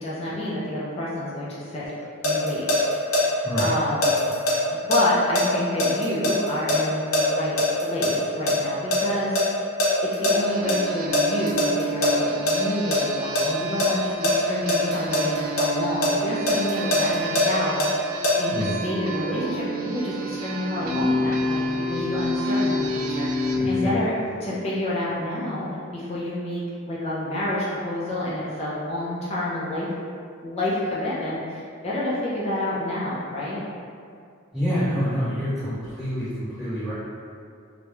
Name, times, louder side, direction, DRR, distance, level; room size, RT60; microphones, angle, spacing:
voice 1, 0.0-1.9 2.2-4.3 4.7-7.6 7.8-9.4 10.0-24.1 24.4-25.7 25.9-29.9 30.4-33.6, left 1 dB, 30° left, -7 dB, 0.3 m, -29 dB
sound 1, 1.8-3.2 3.6-8.1 8.5-10.3 10.7-10.8 11.1-12.5 12.9-13.4 13.8-15.6 16.0-18.3, left 1 dB, 75° left, 0.6 m, -21 dB
sound 2, 10.3-23.6, right 6 dB, 85° right, 0.3 m, -33 dB
sound 3, 20.7-24.0, left 3 dB, 50° left, 0.9 m, -25 dB
voice 2, 23.5-24.0 34.5-36.9, equal, 5° right, -16 dB, 0.8 m, -27 dB
2.2 x 2.0 x 2.9 m, 2.3 s
head